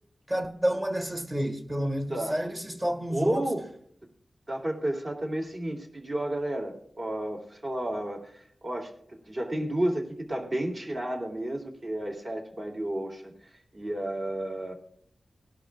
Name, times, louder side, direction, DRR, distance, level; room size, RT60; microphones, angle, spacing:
voice 1, 0.3-3.4, equal, 20° right, 1.8 m, -30 dB
voice 2, 3.1-3.6 4.5-13.3 13.7-14.7, right 1 dB, 40° right, 2.8 m, -32 dB
18.5 x 11.5 x 2.4 m
wide cardioid pair, 115°, 0 cm